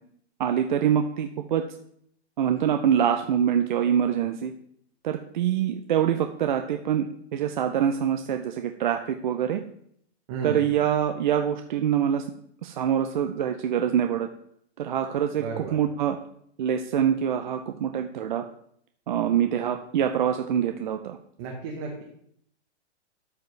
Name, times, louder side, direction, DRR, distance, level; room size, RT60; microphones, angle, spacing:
voice 1, 0.4-1.7 2.4-4.5 5.0-7.1 7.3-9.6 10.4-12.2 12.6-14.3 14.8-16.2 16.6-18.4 19.1-21.2, right 9 dB, 45° right, 6 dB, 0.5 m, -25 dB
voice 2, 10.3-10.7 15.4-15.8 21.4-22.0, right 4 dB, 25° right, -1 dB, 1.0 m, -33 dB
13.5 x 4.8 x 3.2 m, 0.68 s
hypercardioid pair, 170°, 34 cm